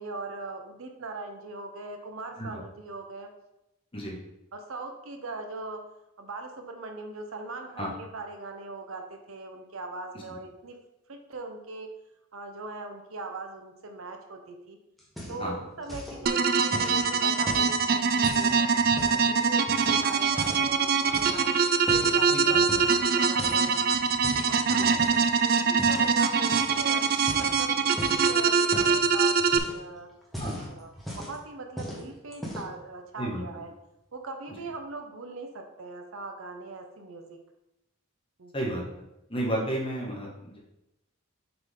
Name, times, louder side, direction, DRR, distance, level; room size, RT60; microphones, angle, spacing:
voice 1, 0.0-3.3 4.5-5.8 6.2-10.8 11.1-11.9 12.3-14.8 15.3-18.7 19.1-24.0 24.5-30.1 30.6-33.7 34.1-37.4 38.4-38.7, right 3 dB, 75° right, 5 dB, 0.8 m, -40 dB
sound 1, 15.0-15.6 15.8-16.2 16.7-19.3 19.7-20.7 21.1-22.2 22.7-23.1 23.4-25.3 25.8-26.1 26.5-26.8 27.1-28.3 28.7-29.0 29.4-29.9 30.2-31.4 31.8-32.0 32.3-32.8, equal, ahead, 1.2 m, -38 dB
sound 2, 16.3-29.6, right 5 dB, 45° right, 0.3 m, -24 dB
voice 2, 30.4-30.8 33.2-33.4 38.5-38.8 39.3-40.6, right 1 dB, 25° left, -3 dB, 1.4 m, -32 dB
6.8 x 3.9 x 3.7 m, 0.90 s
head